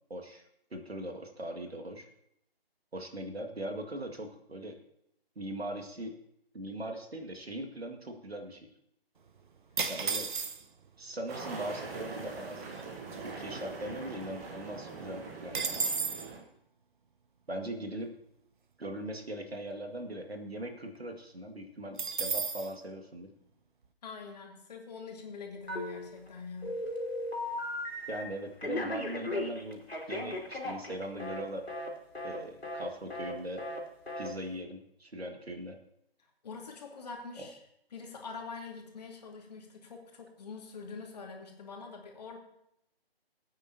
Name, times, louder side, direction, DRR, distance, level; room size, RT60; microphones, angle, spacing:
voice 1, 0.1-0.4 0.7-2.1 2.9-4.8 5.4-6.2 6.5-8.7 9.9-10.3 11.0-12.9 13.2-16.0 17.5-18.1 18.8-23.3 28.1-31.7 32.2-33.7 34.2-35.8 37.4-37.5, right 1 dB, 80° right, 4 dB, 2.1 m, -40 dB
sound 1, 9.8-10.9 11.7-11.8 11.9-12.3 12.7-14.2 14.5-14.6 14.9-16.3 22.0-22.7, right 5 dB, 55° right, 1.0 m, -34 dB
sound 2, 11.3-16.4, right 4 dB, 15° right, 1.2 m, -43 dB
voice 2, 24.0-26.8 36.2-37.6 37.9-42.4, left 4 dB, 40° left, 1 dB, 2.4 m, -45 dB
Telephone, 25.7-26.3 26.6-28.2 28.6-31.4 31.7-31.9 32.1-32.4 32.6-32.8 33.1-33.3 33.6-33.8 34.1-34.3, left 1 dB, 85° left, 3.1 m, -36 dB
20.0 x 9.0 x 2.8 m, 0.75 s
figure-of-eight pair, 145°, 30 cm